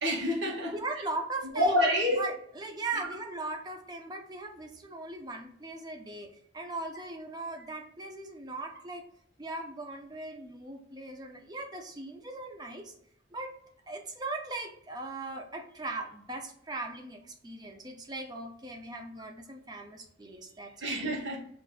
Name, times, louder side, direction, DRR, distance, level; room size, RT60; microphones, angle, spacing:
voice 1, 0.0-0.7 1.5-2.2 20.8-21.4, equal, 70° right, 1.0 m, -27 dB
voice 2, 0.7-1.8 2.1-9.0 9.4-12.9 13.3-13.5 13.9-20.9, right 2 dB, 20° right, 0.4 m, -39 dB
4.5 x 2.3 x 2.4 m
head